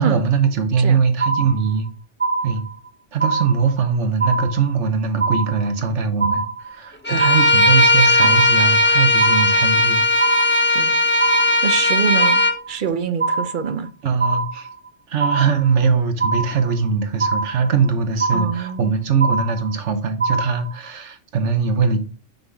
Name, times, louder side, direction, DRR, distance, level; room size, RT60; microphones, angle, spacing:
voice 1, 0.0-1.9 2.4-2.6 3.1-10.0 14.0-14.7 15.1-22.0, right 5 dB, 70° right, 1.3 m, -21 dB
sound 1, 1.2-1.9 2.2-2.9 3.2-3.9 4.2-4.9 5.2-5.9 6.2-6.9 7.2-7.9 8.2-8.9 9.2-9.9 10.2-10.9 11.2-11.9 12.2-12.9 13.2-13.9 14.2-14.9 15.2-15.9 16.2-16.9 17.2-17.9 18.2-18.9 19.2-19.9 20.2-20.9, right 4 dB, 10° right, 0.7 m, -23 dB
Bowed string instrument, 7.1-12.6, left 1 dB, 15° left, 0.4 m, -16 dB
voice 2, 11.6-13.9 18.3-18.9, right 7 dB, 50° right, 0.7 m, -25 dB
5.9 x 5.6 x 3.4 m
omnidirectional pair, 1.3 m